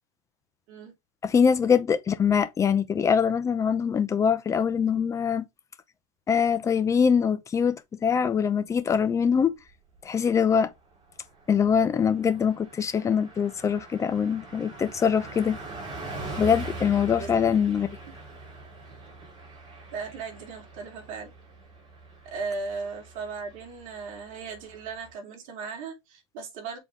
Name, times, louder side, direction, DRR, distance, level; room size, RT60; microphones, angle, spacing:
voice 1, 1.2-5.4 6.3-7.8 8.0-9.5 10.1-10.7 11.5-15.6 16.4-17.9, left 7 dB, 20° left, 0.7 m, -23 dB
Car passing by, 9.5-10.1 10.4-10.6 10.9-25.1, right 2 dB, 30° right, 3.1 m, -42 dB
voice 2, 19.9-21.3 22.2-26.8, right 4 dB, 50° right, 2.9 m, -37 dB
7.2 x 4.1 x 3.3 m
supercardioid pair, 140°, 17 cm